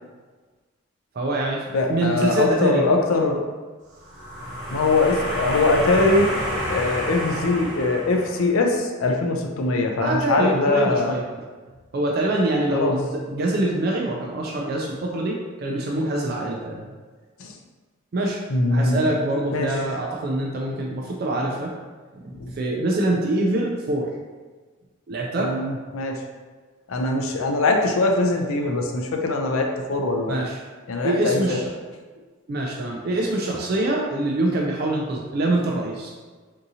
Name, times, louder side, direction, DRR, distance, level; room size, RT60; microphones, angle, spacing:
voice 1, 1.1-2.8 9.9-11.2 11.9-16.9 18.1-18.4 18.7-21.7 22.2-24.1 25.1-25.5 30.3-30.6 31.0-31.6 32.5-36.1, right 1 dB, 45° right, -1 dB, 0.3 m, -24 dB
voice 2, 1.7-3.4 4.7-6.3 6.7-11.2 12.7-12.9 17.4-17.5 18.5-19.0 19.5-19.7 22.4-22.5 25.4-26.2 26.9-30.4 30.9-31.6, left 3 dB, 75° left, 2 dB, 0.5 m, -22 dB
sound 1, 4.0-8.7, equal, 20° right, 1.1 m, -29 dB
3.6 x 2.7 x 2.7 m, 1.4 s
head